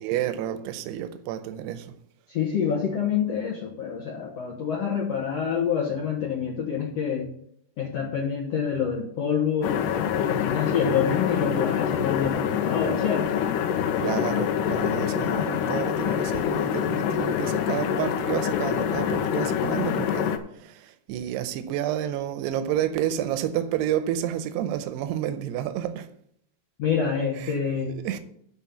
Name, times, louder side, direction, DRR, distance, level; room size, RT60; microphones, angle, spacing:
voice 1, 0.0-1.9 14.0-26.1 27.4-27.6 27.9-28.2, right 11 dB, 85° right, 2.7 m, -30 dB
voice 2, 2.3-7.3 7.8-13.3 26.8-27.9, left 7 dB, 70° left, 1.5 m, -27 dB
sound 1, 9.6-20.4, left 9 dB, 90° left, 1.9 m, -26 dB
11.5 x 4.3 x 7.0 m
omnidirectional pair, 4.7 m